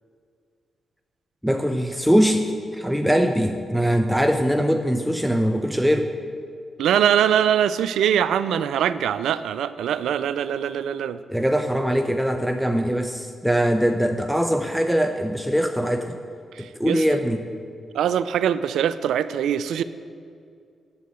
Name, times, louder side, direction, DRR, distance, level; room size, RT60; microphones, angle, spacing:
voice 1, 1.4-6.1 11.3-16.2 16.6-17.5, equal, ahead, 5 dB, 0.7 m, -22 dB
voice 2, 6.8-11.2 16.5-17.0 17.9-19.8, right 9 dB, 80° right, 15 dB, 0.3 m, -22 dB
8.3 x 7.7 x 7.8 m, 2.3 s
supercardioid pair, 45°, 0 cm